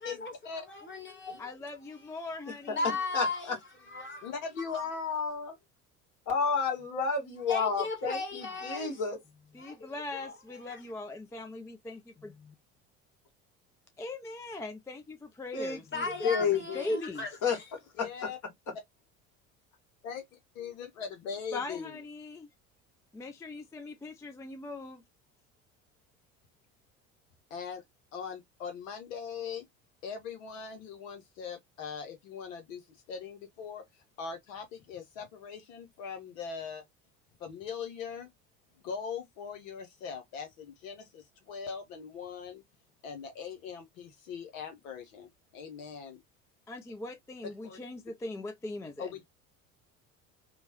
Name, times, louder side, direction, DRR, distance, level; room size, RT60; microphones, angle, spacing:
voice 1, 0.0-1.5 2.7-4.3 4.7-4.8 7.5-9.0 9.6-10.8 15.9-17.6, left 3 dB, 30° left, 1.7 m, -37 dB
voice 2, 1.4-3.0 9.5-12.5 14.0-15.9 16.2-17.3 21.5-22.5 23.1-25.0 46.7-49.1, left 2 dB, 10° left, 0.4 m, -40 dB
voice 3, 4.2-5.6 18.0-18.4 20.0-20.2 20.5-21.9 27.5-27.8 28.1-29.6 30.0-32.8 33.1-33.8 34.2-36.8 37.4-38.3 38.8-42.6 43.0-46.2 47.6-47.8 49.0-49.2, left 6 dB, 70° left, 0.8 m, -40 dB
voice 4, 6.3-9.2 15.5-15.8 16.2-16.9 17.4-17.6 18.0-18.3, left 5 dB, 45° left, 1.5 m, -30 dB
3.0 x 2.1 x 2.8 m
hypercardioid pair, 65°, 41 cm